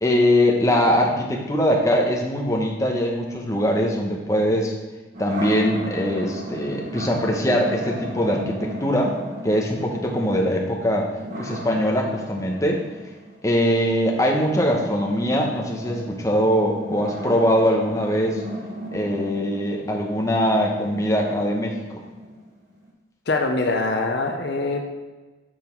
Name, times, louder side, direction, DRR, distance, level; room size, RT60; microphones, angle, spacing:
voice 1, 0.0-4.7 5.2-9.2 9.4-11.1 11.4-12.8 13.4-18.4 18.9-22.0, equal, 15° left, 0 dB, 0.9 m, -22 dB
sound 1, 5.1-22.9, equal, 45° right, 1.5 m, -36 dB
voice 2, 23.3-24.9, left 3 dB, 60° left, 4 dB, 0.7 m, -23 dB
6.3 x 5.5 x 4.5 m, 1.2 s
head